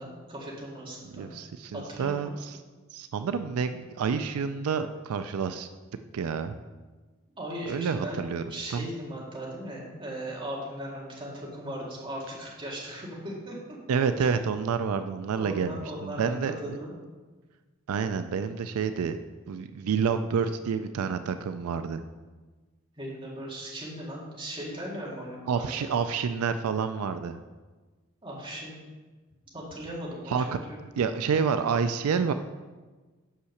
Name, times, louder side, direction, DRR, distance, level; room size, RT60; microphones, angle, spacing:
voice 1, 0.0-1.3 1.7-2.4 7.4-8.2 8.5-13.8 15.3-16.9 23.0-25.9 28.2-28.8 29.5-30.8, right 1 dB, 25° right, -4 dB, 1.9 m, -38 dB
voice 2, 1.1-2.6 2.9-5.7 6.1-6.6 7.7-8.4 8.7-8.9 13.9-16.8 17.9-19.2 19.5-22.0 25.5-27.4 30.3-30.6 31.0-32.3, right 6 dB, 85° right, 10 dB, 0.4 m, -28 dB
5.7 x 5.6 x 6.4 m, 1.3 s
head